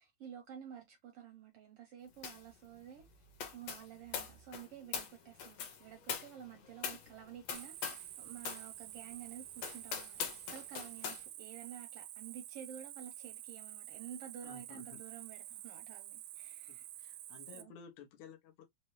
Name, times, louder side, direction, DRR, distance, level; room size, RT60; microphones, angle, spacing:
voice 1, 0.0-3.1 3.5-16.9 17.5-17.7, right 9 dB, 75° right, 1.4 m, -51 dB
sound 1, 2.2-2.5 2.8-8.1 8.4-8.7 9.1-9.2 9.6-11.2, left 7 dB, 65° left, 1.9 m, -42 dB
Cricket, 7.5-17.6, right 13 dB, 90° right, 2.0 m, -49 dB
voice 2, 14.4-15.0 16.7-18.7, left 7 dB, 80° left, 2.2 m, -55 dB
5.4 x 2.0 x 3.0 m
omnidirectional pair, 3.3 m